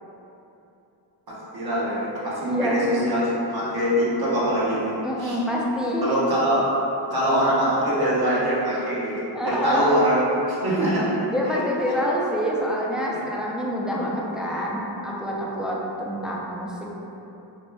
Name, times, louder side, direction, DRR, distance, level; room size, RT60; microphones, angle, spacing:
voice 1, 1.5-4.9 5.2-5.4 6.0-6.7 7.1-9.1 9.4-10.2 10.5-11.1 13.9-14.1, right 1 dB, 55° right, -8 dB, 0.8 m, -23 dB
voice 2, 2.4-2.8 5.0-6.1 9.3-9.9 11.3-16.9, equal, ahead, -4 dB, 0.3 m, -26 dB
2.8 x 2.1 x 3.2 m, 2.9 s
wide cardioid pair, 65°, 44 cm